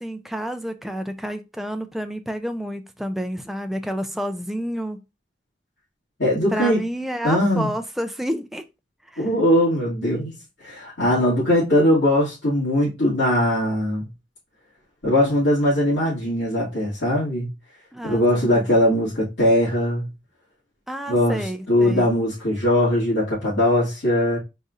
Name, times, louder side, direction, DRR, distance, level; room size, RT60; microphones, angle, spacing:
voice 1, 0.0-5.0 6.5-8.6 9.1-9.3 17.9-18.7 20.9-22.1, equal, ahead, 0.4 m, -29 dB
voice 2, 6.2-6.8 7.2-7.7 9.2-10.3 10.6-14.1 15.0-17.5 18.0-20.1 21.1-24.4, left 1 dB, 85° left, 2.2 m, -20 dB
4.1 x 3.9 x 2.4 m
head